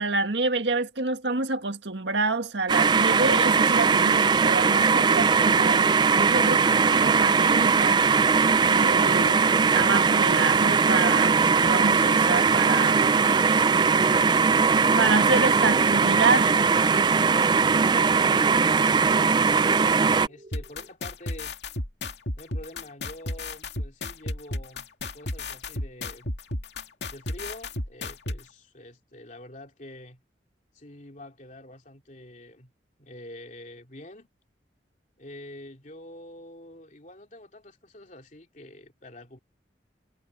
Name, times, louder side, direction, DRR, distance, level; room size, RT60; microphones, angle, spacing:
voice 1, 0.0-8.0 8.6-9.4 9.8-13.1 15.0-16.6, right 3 dB, 85° right, 1.8 m, -27 dB
sound 1, 2.7-20.3, right 5 dB, 25° right, 0.3 m, -20 dB
sound 2, 4.9-20.9, right 2 dB, 40° right, 0.9 m, -42 dB
voice 2, 18.2-21.6 22.4-24.9 25.1-26.3 27.1-30.2 30.7-32.7 33.0-34.3 35.2-39.4, left 1 dB, 45° left, 2.8 m, -46 dB
sound 3, 20.5-28.4, left 2 dB, 75° left, 2.4 m, -32 dB
head